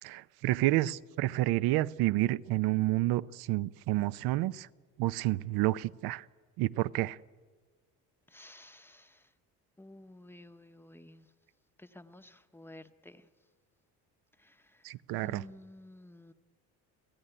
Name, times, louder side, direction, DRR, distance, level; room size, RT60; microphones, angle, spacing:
voice 1, 0.0-4.7 5.0-6.3 6.6-7.2 14.8-15.4, right 17 dB, 80° right, 0.7 m, -29 dB
voice 2, 8.3-9.3 9.8-11.3 11.8-13.3 14.4-16.3, left 1 dB, 5° left, 0.7 m, -53 dB
29.5 x 16.0 x 10.0 m
cardioid pair, 155°, 37 cm